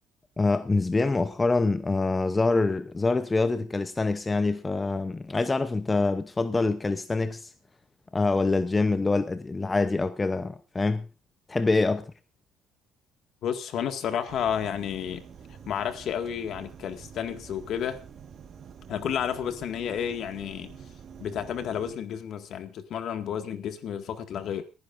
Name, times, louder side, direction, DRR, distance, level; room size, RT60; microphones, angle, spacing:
voice 1, 0.4-7.5 8.1-11.1 11.5-12.1, left 3 dB, 20° left, 0.7 m, -25 dB
voice 2, 13.4-15.2 15.7-18.0 18.9-20.8 21.2-24.6, left 8 dB, 60° left, 1.9 m, -31 dB
sound 1, 14.3-22.0, right 7 dB, 45° right, 1.5 m, -47 dB
29.5 x 10.0 x 2.6 m
cardioid pair, 100°, 0 cm